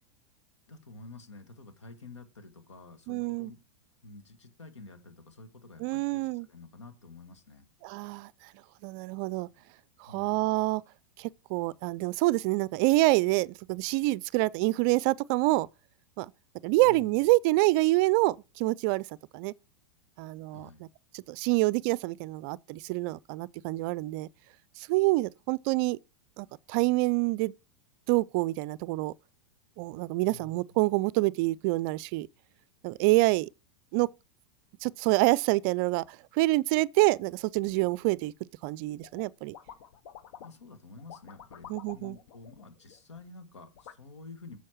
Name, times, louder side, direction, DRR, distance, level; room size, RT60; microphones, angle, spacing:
voice 1, 0.7-3.6 4.0-7.6 10.1-10.5 16.8-17.1 20.5-20.9 30.2-30.6 40.4-44.6, left 3 dB, 90° left, 1.8 m, -49 dB
voice 2, 3.1-3.5 5.8-6.5 7.8-8.3 8.8-9.5 10.0-10.8 11.2-15.7 16.2-16.3 16.6-19.1 19.3-19.5 20.2-20.7 21.1-24.3 24.8-26.0 26.4-27.5 28.1-29.1 29.8-32.3 32.8-33.5 33.9-34.1 34.8-38.3 38.6-39.5 41.7-42.2, right 21 dB, 50° right, 0.4 m, -27 dB
sound 1, 39.0-39.3 39.5-40.7 41.0-43.2 43.7-43.9, left 9 dB, 60° left, 0.9 m, -49 dB
7.7 x 6.8 x 4.5 m
hypercardioid pair, 100°, 15 cm